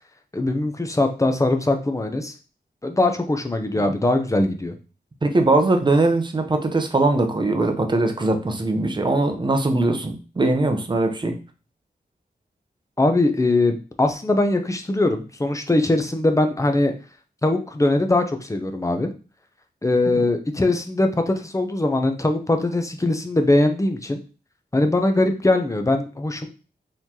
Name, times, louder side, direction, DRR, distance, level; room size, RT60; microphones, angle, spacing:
voice 1, 0.3-2.3 2.8-4.7 13.0-16.9 17.4-19.1 19.8-24.2 24.7-26.5, left 2 dB, 20° left, 6 dB, 0.6 m, -21 dB
voice 2, 5.2-11.4 20.1-20.2, right 2 dB, 25° right, 5 dB, 0.7 m, -21 dB
4.0 x 3.1 x 2.8 m, 0.34 s
wide cardioid pair, 95°, 17 cm